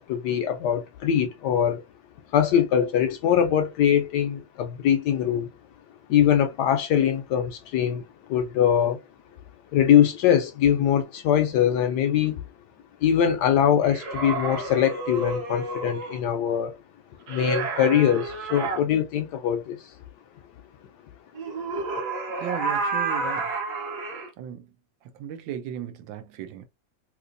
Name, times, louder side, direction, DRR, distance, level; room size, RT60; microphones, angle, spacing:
voice 1, 0.0-1.8 2.3-5.5 6.1-8.0 8.3-9.0 9.7-12.4 13.0-16.8 17.3-19.9, left 9 dB, 75° left, 1.0 m, -22 dB
sound 1, 13.8-16.2 17.3-18.8 21.4-24.3, right 3 dB, 60° right, 1.3 m, -30 dB
voice 2, 22.4-23.5 24.4-24.7 25.2-26.6, right 9 dB, 80° right, 1.3 m, -35 dB
3.3 x 2.9 x 2.5 m
omnidirectional pair, 2.1 m